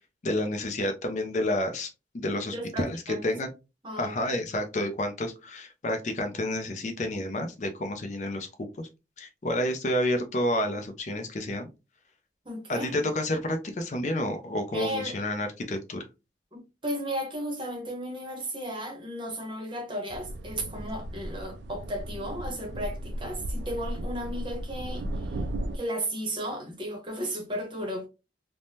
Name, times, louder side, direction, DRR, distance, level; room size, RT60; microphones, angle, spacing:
voice 1, 0.2-1.9 2.1-3.5 4.0-8.5 8.8-8.9 9.2-11.7 12.7-16.0, left 1 dB, 40° left, 0.4 m, -30 dB
voice 2, 2.5-3.2 3.8-4.1 12.4-13.1 14.7-15.2 16.5-25.4 25.7-28.1, equal, 25° right, 0.8 m, -35 dB
sound 1, 20.1-25.8, right 1 dB, 70° right, 0.3 m, -35 dB
3.3 x 2.1 x 2.7 m
head